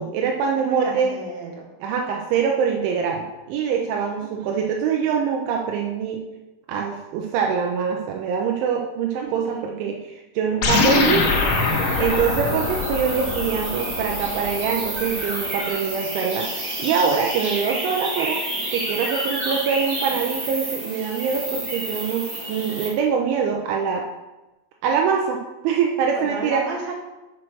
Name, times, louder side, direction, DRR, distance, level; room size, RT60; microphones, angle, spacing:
voice 1, 0.0-1.1 1.8-6.2 6.7-11.3 12.0-18.4 18.7-24.1 24.8-26.6, right 6 dB, 80° right, 1 dB, 3.1 m, -24 dB
voice 2, 0.6-1.7 4.2-4.5 9.2-9.7 26.0-26.9, right 3 dB, 65° right, -2 dB, 3.0 m, -33 dB
sound 1, 10.6-15.3, left 4 dB, 80° left, 1.7 m, -24 dB
sound 2, 10.7-22.9, right 1 dB, 40° right, 1.8 m, -30 dB
6.4 x 5.9 x 6.1 m, 1.0 s
omnidirectional pair, 5.5 m